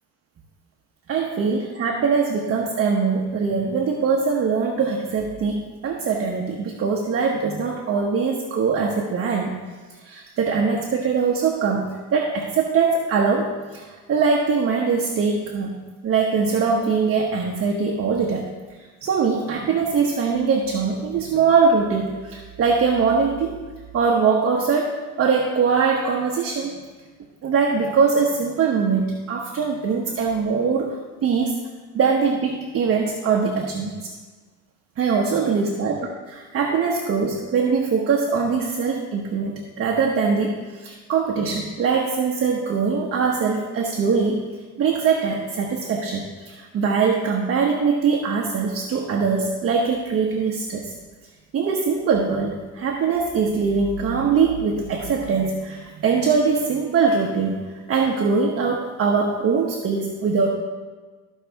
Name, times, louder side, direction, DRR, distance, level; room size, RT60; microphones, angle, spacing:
voice 1, 1.1-9.6 10.0-15.8 16.0-18.5 19.0-23.5 23.9-26.7 27.4-31.5 31.9-34.1 35.0-35.9 36.3-44.4 44.8-50.9 51.5-57.6 57.9-60.5, right 5 dB, 40° right, 0 dB, 1.0 m, -22 dB
14.0 x 5.5 x 3.5 m, 1.4 s
cardioid pair, 115°, 33 cm